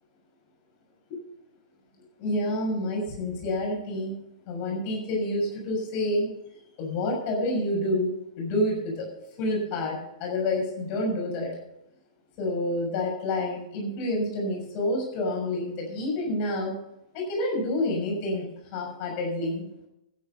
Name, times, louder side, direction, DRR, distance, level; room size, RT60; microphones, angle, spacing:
voice 1, 2.2-4.1 4.5-6.3 6.8-9.1 9.4-11.6 12.4-16.7 17.1-19.6, left 1 dB, 40° left, 0 dB, 6.4 m, -28 dB
12.5 x 10.0 x 5.5 m, 0.84 s
hypercardioid pair, 110°, 3 cm